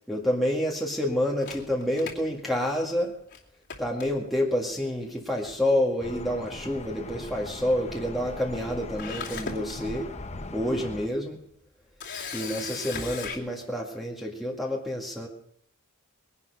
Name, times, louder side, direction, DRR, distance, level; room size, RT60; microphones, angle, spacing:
voice 1, 0.1-3.1 3.8-10.1 10.5-11.4 12.3-15.3, left 1 dB, ahead, -1 dB, 2.0 m, -28 dB
Camera, 1.4-3.0 3.3-3.4 3.7-4.5 5.5-5.7 6.0-6.1 8.6-8.7 9.0-9.7 10.3-10.4 12.0-13.4, left 5 dB, 55° left, 2.7 m, -37 dB
sound 1, 6.0-11.1, left 2 dB, 30° left, 1.0 m, -40 dB
21.0 x 11.0 x 5.5 m, 0.69 s
head